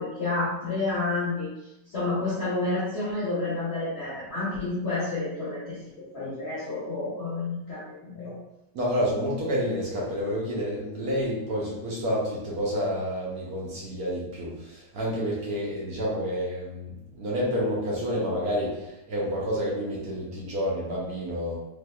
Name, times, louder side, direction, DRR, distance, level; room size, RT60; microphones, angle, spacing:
voice 1, 0.0-1.5 1.9-5.8 6.1-8.3, left 2 dB, 55° left, -8 dB, 0.7 m, -29 dB
voice 2, 8.7-21.5, equal, 60° right, -6 dB, 1.1 m, -29 dB
3.4 x 2.8 x 2.2 m, 0.89 s
omnidirectional pair, 2.0 m